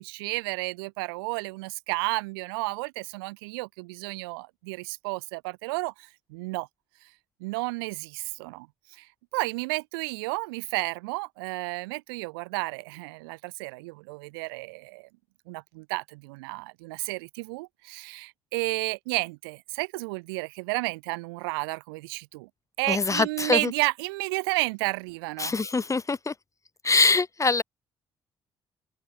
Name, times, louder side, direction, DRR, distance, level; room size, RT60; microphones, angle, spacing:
voice 1, 0.0-6.7 7.0-7.1 7.4-15.1 15.5-22.5 22.8-25.5, right 26 dB, 80° right, 2.5 m, -32 dB
voice 2, 22.9-23.7 25.4-26.3 26.8-27.6, left 4 dB, 25° left, 1.3 m, -23 dB
hypercardioid pair, 50°, 12 cm